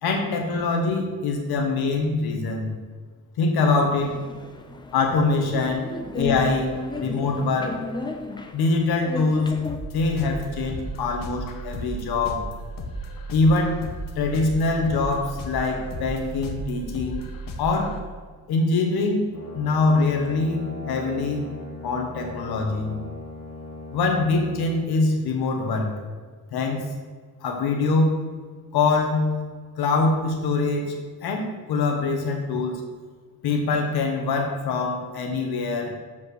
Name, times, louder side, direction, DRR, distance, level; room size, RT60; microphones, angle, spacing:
voice 1, 0.0-2.7 3.4-4.2 4.9-5.9 6.1-7.8 8.5-9.4 9.9-12.5 13.3-13.8 14.2-17.2 17.6-17.9 18.5-19.3 19.5-21.4 21.8-22.9 23.9-25.9 26.5-26.9 27.4-28.2 28.7-29.3 29.8-30.9 31.2-32.7 33.4-35.9, left 3 dB, 90° left, 3 dB, 1.5 m, -23 dB
sound 1, 4.0-9.8, left 3 dB, 10° left, 0.7 m, -34 dB
sound 2, 9.6-18.0, right 1 dB, 65° left, 1.1 m, -35 dB
Brass instrument, 19.3-24.8, left 2 dB, 45° left, 2.5 m, -38 dB
7.6 x 5.4 x 6.3 m, 1.5 s
cardioid pair, 125°, 37 cm